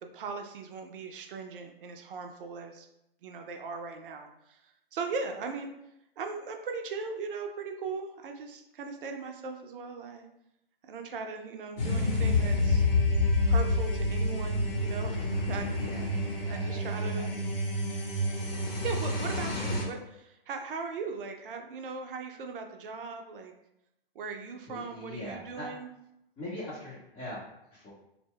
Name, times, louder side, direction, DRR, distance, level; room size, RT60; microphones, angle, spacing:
voice 1, 0.0-2.9 3.2-5.7 6.2-10.3 10.8-12.8 13.5-15.7 16.5-17.4 18.8-23.5 24.1-25.9, right 4 dB, 60° right, 4 dB, 0.5 m, -39 dB
sound 1, 11.8-19.8, left 2 dB, 70° left, 1.0 m, -28 dB
voice 2, 16.4-17.4 24.7-25.7 26.4-27.9, left 1 dB, 20° left, -7 dB, 0.7 m, -42 dB
2.1 x 2.1 x 3.5 m, 0.83 s
hypercardioid pair, 120°, 30 cm